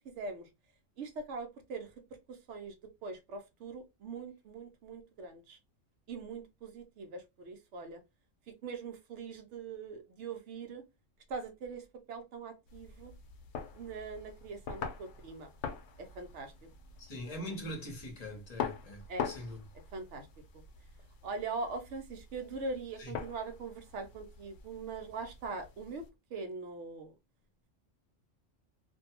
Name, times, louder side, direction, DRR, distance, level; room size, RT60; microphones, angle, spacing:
voice 1, 1.0-1.9 2.3-2.7 3.0-5.6 6.1-8.0 8.6-10.8 11.3-13.1 13.7-15.5 16.0-16.5 19.1-19.3 19.9-20.3 21.2-26.0 26.3-27.1, right 4 dB, 70° right, 0.9 m, -42 dB
sound 1, 12.7-26.1, left 7 dB, 70° left, 0.8 m, -44 dB
voice 2, 17.1-19.6 23.0-23.1, equal, 35° left, 0.9 m, -42 dB
2.5 x 2.2 x 2.7 m
omnidirectional pair, 1.3 m